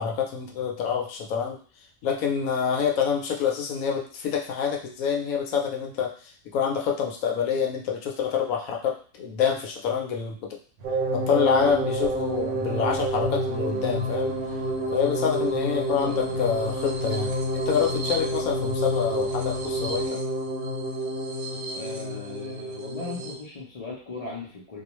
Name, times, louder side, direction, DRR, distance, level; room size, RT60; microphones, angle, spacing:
voice 1, 0.0-1.6 2.0-6.1 6.5-10.6 11.1-14.3 14.9-20.2, left 7 dB, 75° left, 1 dB, 1.0 m, -27 dB
sound 1, 10.8-20.1, right 3 dB, 65° right, 0.9 m, -43 dB
sound 2, 10.8-23.4, right 1 dB, 80° right, 1.1 m, -29 dB
voice 2, 16.0-16.3 21.7-24.8, left 3 dB, 55° left, -4 dB, 0.4 m, -38 dB
2.3 x 2.3 x 2.9 m, 0.41 s
omnidirectional pair, 1.5 m